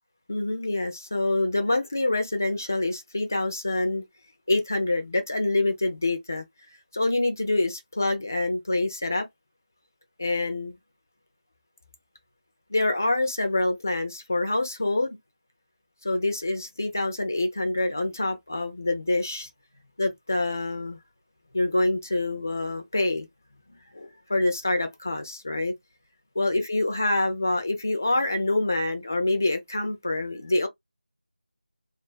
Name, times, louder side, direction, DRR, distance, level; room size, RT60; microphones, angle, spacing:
voice 1, 0.3-4.0 4.5-6.4 6.9-9.3 10.2-10.8 12.7-15.2 16.0-19.5 20.0-21.0 21.5-23.3 23.9-25.7 26.4-30.7, left 2 dB, 20° left, 0.3 m, -26 dB
2.3 x 2.3 x 2.3 m
figure-of-eight pair, 175°, 5 cm